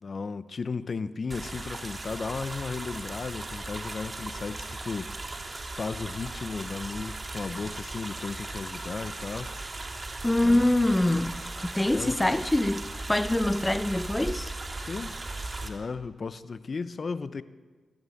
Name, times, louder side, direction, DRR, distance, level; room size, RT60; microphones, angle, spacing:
voice 1, 0.0-5.1 5.7-9.5 10.4-10.7 11.9-12.2 13.9-14.0 14.8-15.2 15.6-17.4, left 4 dB, 50° left, 0.9 m, -35 dB
sound 1, 1.3-15.7, right 2 dB, 35° right, 3.4 m, -37 dB
voice 2, 10.2-14.5, left 1 dB, 15° left, 0.9 m, -25 dB
23.0 x 14.5 x 8.6 m
supercardioid pair, 45°, 0 cm